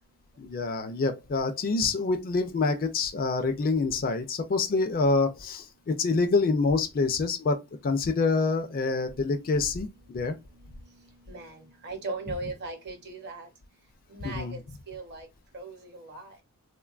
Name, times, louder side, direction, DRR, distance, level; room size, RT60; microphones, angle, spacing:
voice 1, 0.4-10.4 14.2-14.6, left 3 dB, 40° left, 0.4 m, -26 dB
voice 2, 11.3-13.5 14.1-14.6 14.9-15.3 15.5-16.4, right 3 dB, 45° right, 0.7 m, -38 dB
3.2 x 2.2 x 2.4 m
head